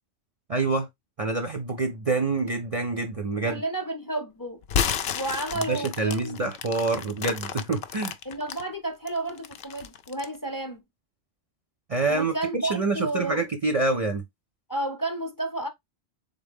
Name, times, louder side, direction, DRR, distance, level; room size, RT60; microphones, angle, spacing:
voice 1, 0.5-0.9 1.2-3.6 5.7-8.1 11.9-14.2, right 3 dB, 40° right, 0.6 m, -26 dB
voice 2, 3.4-4.6 5.1-6.5 8.2-10.8 12.1-13.4 14.7-15.7, right 2 dB, 20° left, 0.7 m, -31 dB
sound 1, 4.6-8.6 9.1-10.4, left 8 dB, 75° left, 0.8 m, -31 dB
3.9 x 3.7 x 3.5 m
omnidirectional pair, 1.1 m